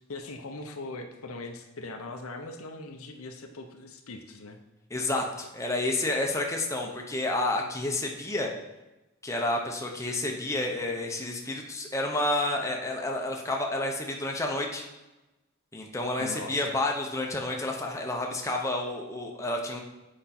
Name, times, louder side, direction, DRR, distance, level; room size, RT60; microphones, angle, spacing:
voice 1, 0.1-4.6 16.2-16.8, left 2 dB, 80° left, 5 dB, 0.8 m, -40 dB
voice 2, 4.9-8.5 9.2-14.8 15.7-19.8, left 2 dB, 15° left, 1 dB, 0.7 m, -30 dB
7.9 x 5.1 x 4.3 m, 1.0 s
head